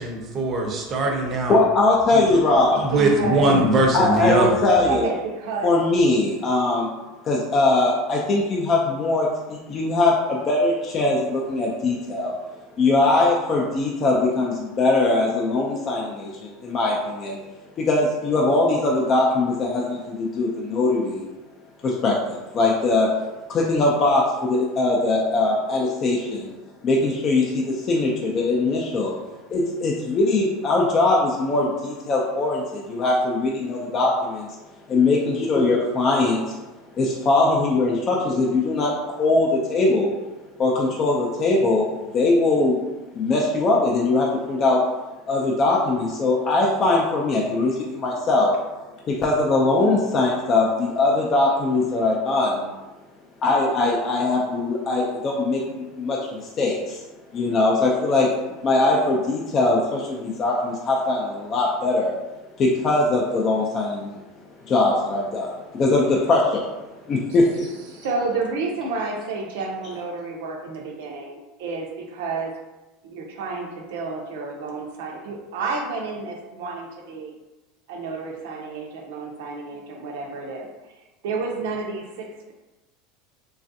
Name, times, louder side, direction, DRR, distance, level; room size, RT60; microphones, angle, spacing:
voice 1, 0.0-1.6 2.8-4.5, right 2 dB, 30° right, 1 dB, 0.6 m, -21 dB
voice 2, 1.5-2.9 3.9-5.1 5.6-6.9 7.2-12.3 12.8-17.4 17.8-21.3 21.8-23.1 23.5-26.6 26.8-29.2 29.5-34.5 34.9-36.6 37.0-38.9 39.2-40.1 40.6-42.8 43.1-44.8 45.3-48.5 49.1-52.7 53.4-57.0 57.3-58.3 58.6-62.1 62.6-64.2 64.7-66.7 67.1-67.7, left 2 dB, 30° left, -3 dB, 0.4 m, -21 dB
voice 3, 2.9-3.5 4.9-5.7 35.2-35.4 67.9-72.6 73.0-77.3 77.9-80.7 81.2-82.5, right 4 dB, 80° right, 1 dB, 0.6 m, -30 dB
3.2 x 2.4 x 2.6 m, 1.1 s
supercardioid pair, 140°, 0 cm